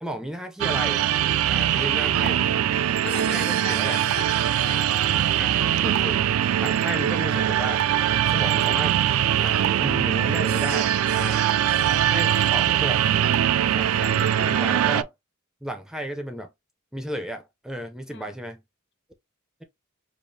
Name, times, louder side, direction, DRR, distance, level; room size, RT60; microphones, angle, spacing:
voice 1, 0.0-1.1 1.4-2.4 3.0-4.0 5.4-6.2 6.6-7.9 8.3-9.0 9.4-11.5 12.1-13.0 13.7-15.1 15.6-16.5 16.9-18.6, right 1 dB, 5° right, 0.4 m, -33 dB
sound 1, 0.6-15.0, right 10 dB, 80° right, 0.3 m, -22 dB
voice 2, 1.6-2.5 3.0-4.9 11.5-11.9 18.1-18.4, left 6 dB, 55° left, 0.7 m, -41 dB
4.9 x 2.4 x 2.7 m
head